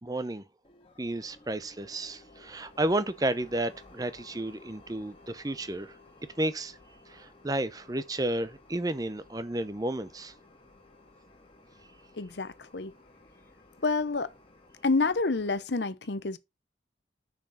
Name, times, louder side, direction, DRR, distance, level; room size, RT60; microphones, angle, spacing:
voice 1, 0.0-0.4 1.0-6.0 6.4-6.8 7.1-10.3, right 1 dB, 20° right, 0.6 m, -32 dB
sound 1, 0.6-15.6, left 2 dB, 30° left, 1.7 m, -56 dB
voice 2, 12.2-12.9 13.8-14.3 14.8-16.4, left 3 dB, 70° left, 0.9 m, -28 dB
6.6 x 5.9 x 6.4 m
head